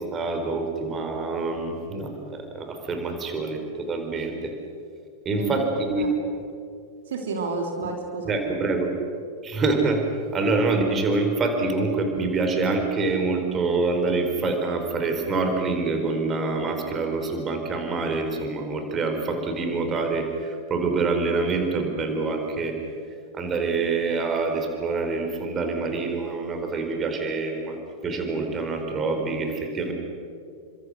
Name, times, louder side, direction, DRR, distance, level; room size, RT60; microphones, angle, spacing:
voice 1, 0.0-4.5 5.2-6.1 8.2-8.9 9.4-10.0 10.3-22.8 23.3-29.9, right 3 dB, 25° right, 4 dB, 4.3 m, -26 dB
voice 2, 5.4-6.1 7.1-8.4, right 3 dB, 60° right, 2 dB, 3.6 m, -30 dB
30.0 x 25.5 x 6.5 m, 2.5 s
figure-of-eight pair, 90°, 0 cm